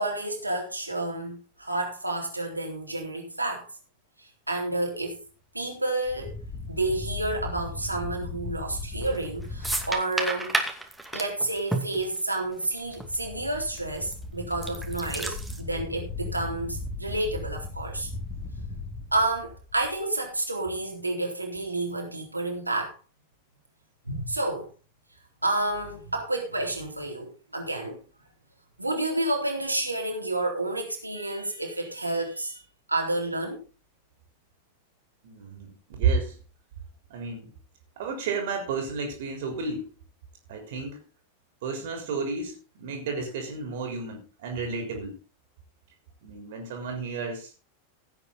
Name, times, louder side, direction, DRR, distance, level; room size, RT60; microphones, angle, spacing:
voice 1, 0.0-3.7 4.2-5.2 5.5-6.4 6.7-10.6 11.1-18.1 19.1-23.0 24.1-24.7 25.4-28.0 28.8-32.6 32.9-33.6, right 2 dB, 85° right, 3.9 m, -30 dB
sound 1, 6.0-9.9 12.7-20.0, left 3 dB, 20° left, 3.4 m, -37 dB
sound 2, 9.0-9.3 9.6-12.6 12.9-13.1 13.8-14.1 14.5-15.6, right 2 dB, 5° right, 2.5 m, -30 dB
voice 2, 35.2-36.4 37.1-37.5 38.0-39.9 40.5-41.0 41.6-45.2 46.2-47.5, right 4 dB, 55° right, 3.8 m, -31 dB
16.5 x 8.5 x 4.0 m
figure-of-eight pair, 90°, 0 cm